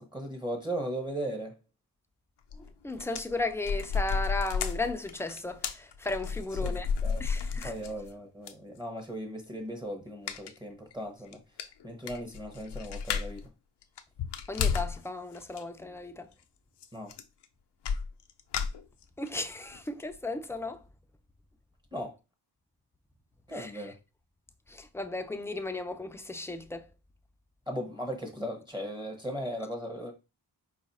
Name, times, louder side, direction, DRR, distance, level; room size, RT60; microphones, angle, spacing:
voice 1, 0.0-1.5 6.6-6.7 7.0-7.2 7.6-11.4 11.8-13.5 16.9-17.1 21.9-22.2 23.5-24.0 27.7-30.1, right 1 dB, 10° right, 0.8 m, -37 dB
sound 1, 2.5-2.7 3.0-8.1 8.5-8.6 10.3-10.6 10.9-11.0 11.3-11.4 11.6-13.5 13.8-15.0 15.3-15.6 16.8-16.9 17.1-17.4 17.8-19.3 19.7-19.8 20.1-20.2, left 6 dB, 80° left, 0.6 m, -32 dB
voice 2, 2.5-6.9 7.2-7.7 14.5-16.3 19.2-20.8 23.5-23.9 24.7-26.9, left 2 dB, 5° left, 0.3 m, -35 dB
4.8 x 2.4 x 4.0 m
wide cardioid pair, 160°, 41 cm